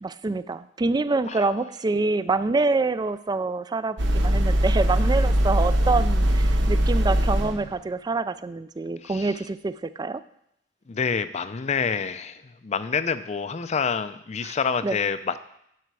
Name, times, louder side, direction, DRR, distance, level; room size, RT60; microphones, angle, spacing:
voice 1, 0.0-10.2 14.4-14.6 14.8-15.0, right 3 dB, 20° right, 14 dB, 0.3 m, -26 dB
sound 1, 4.0-7.7, equal, 75° right, 0.9 m, -21 dB
voice 2, 9.0-9.3 10.9-15.4, left 6 dB, 40° left, 13 dB, 0.4 m, -27 dB
11.0 x 5.8 x 4.7 m, 0.75 s
head